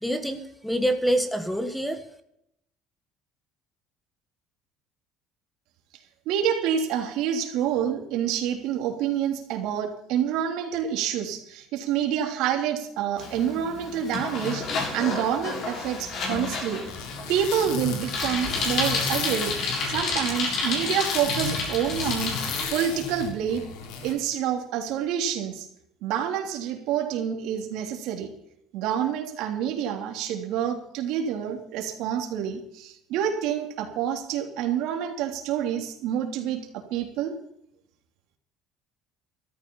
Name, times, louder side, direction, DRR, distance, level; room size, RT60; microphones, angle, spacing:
voice 1, 0.0-2.0, equal, 5° left, 9 dB, 1.5 m, -26 dB
voice 2, 6.2-16.8 17.3-19.5 19.9-22.3 22.7-23.7 24.0-25.7 26.0-28.3 28.7-37.3, right 9 dB, 75° right, 3 dB, 3.3 m, -27 dB
Bicycle, 13.2-22.6, left 3 dB, 55° left, 7.0 m, -30 dB
sound 1, 16.9-24.1, left 5 dB, 80° left, 3.4 m, -34 dB
13.5 x 13.5 x 5.6 m, 0.76 s
cardioid pair, 115°, 0 cm